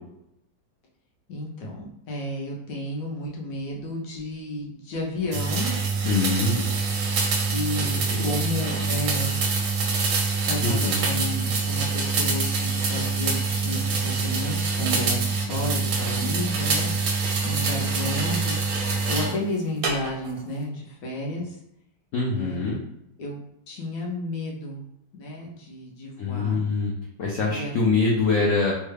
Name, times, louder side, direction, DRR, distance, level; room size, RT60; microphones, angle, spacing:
voice 1, 1.3-5.7 7.5-9.4 10.5-16.9 17.4-18.7 19.1-21.6 22.3-22.8 23.2-23.4 23.7-24.8 25.2-26.6 27.5-27.7, left 1 dB, 60° left, -2 dB, 1.0 m, -32 dB
sound 1, 5.3-19.4 19.8-20.4, right 4 dB, 70° right, 0.8 m, -25 dB
voice 2, 6.0-6.7 7.8-8.3 10.6-11.0 22.1-22.8 26.2-26.9 27.2-28.7, left 3 dB, 90° left, -2 dB, 0.7 m, -24 dB
3.2 x 2.3 x 3.2 m, 0.80 s
omnidirectional pair, 2.0 m